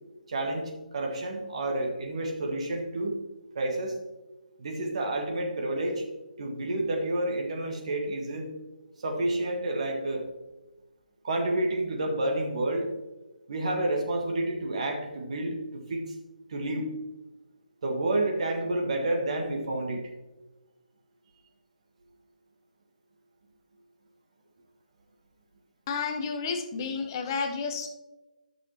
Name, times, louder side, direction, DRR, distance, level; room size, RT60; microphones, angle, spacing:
voice 1, 0.3-3.2 3.5-3.9 4.6-6.0 6.4-8.5 9.0-10.2 11.2-12.9 13.5-16.1 16.5-16.9 17.8-20.0, right 1 dB, 45° right, 2 dB, 1.6 m, -29 dB
voice 2, 25.9-27.9, left 5 dB, 30° left, 6 dB, 0.9 m, -31 dB
12.5 x 6.4 x 3.0 m, 1.1 s
figure-of-eight pair, 140°, 5 cm